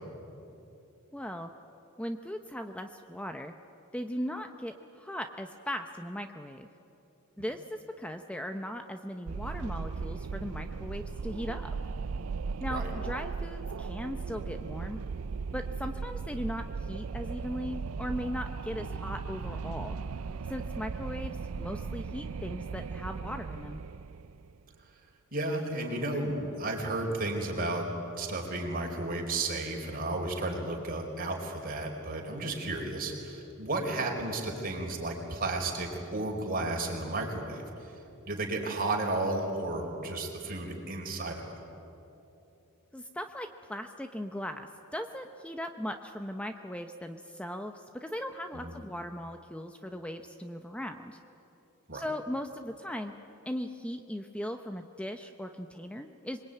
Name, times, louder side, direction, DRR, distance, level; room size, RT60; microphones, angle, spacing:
voice 1, 1.1-1.5 2.0-3.5 3.9-6.7 7.4-11.7 12.6-15.0 15.5-20.0 20.5-23.8 42.9-51.2 51.9-53.1 53.5-56.4, equal, 5° left, 6 dB, 0.8 m, -38 dB
Wind, 9.3-24.6, right 5 dB, 80° right, 0.5 m, -37 dB
voice 2, 25.3-27.9 28.1-37.6 38.3-41.6 48.5-48.7 51.9-52.0, right 2 dB, 45° right, 1 dB, 4.6 m, -33 dB
25.5 x 22.0 x 9.2 m, 2.9 s
head